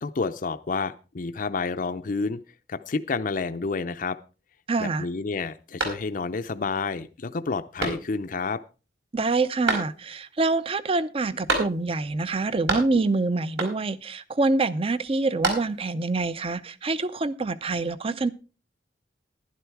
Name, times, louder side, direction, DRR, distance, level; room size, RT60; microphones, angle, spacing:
voice 1, 0.0-2.4 2.7-4.2 4.8-8.6, left 4 dB, 50° left, 0.5 m, -29 dB
voice 2, 4.7-5.1 9.1-18.3, right 3 dB, 30° right, 0.6 m, -26 dB
sound 1, 5.8-6.5 6.9-7.0 7.8-8.4 9.7-10.3 11.5-12.1 12.3-13.2 13.6-14.1 15.1-16.0, right 2 dB, 70° right, 4.5 m, -30 dB
11.5 x 11.0 x 4.6 m
head